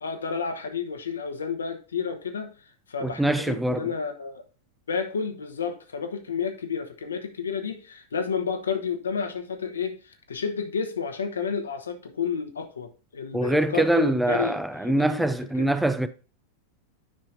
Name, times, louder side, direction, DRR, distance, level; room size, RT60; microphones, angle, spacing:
voice 1, 0.0-4.4 4.9-15.7, left 6 dB, 70° left, 1.1 m, -31 dB
voice 2, 3.0-3.9 13.3-16.1, right 1 dB, 5° right, 0.5 m, -24 dB
9.8 x 5.5 x 2.6 m
figure-of-eight pair, 90°, 0 cm